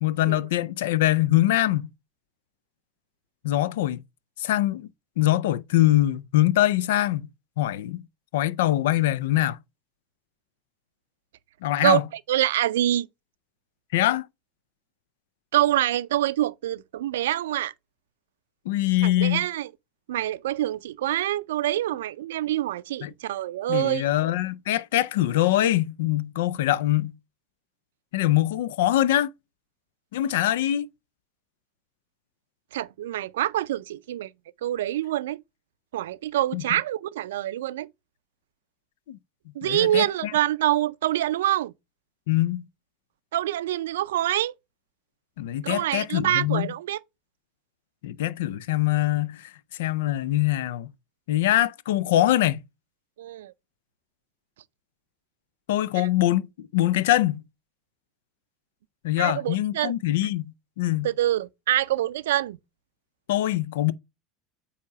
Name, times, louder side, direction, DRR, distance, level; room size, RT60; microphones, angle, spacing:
voice 1, 0.0-1.9 3.4-4.0 4.4-4.9 5.2-7.3 7.6-8.0 8.3-9.6 11.6-12.1 13.9-14.3 18.7-19.5 23.0-23.1 23.7-27.1 28.1-29.3 30.1-30.9 36.5-36.6 39.1-39.2 39.6-40.3 42.3-42.7 45.4-46.7 48.0-49.5 49.8-50.9 51.3-52.6 55.7-57.4 59.0-61.1 63.3-63.9, left 14 dB, 80° left, 0.4 m, -23 dB
voice 2, 12.3-13.1 15.5-17.7 19.0-19.7 20.1-24.0 32.7-34.3 34.6-35.4 35.9-37.9 39.6-41.7 43.3-44.5 45.6-47.0 53.2-53.5 56.0-56.1 59.2-59.9 61.0-62.6, right 13 dB, 85° right, 0.4 m, -25 dB
8.4 x 2.9 x 5.6 m
hypercardioid pair, 85°, 0 cm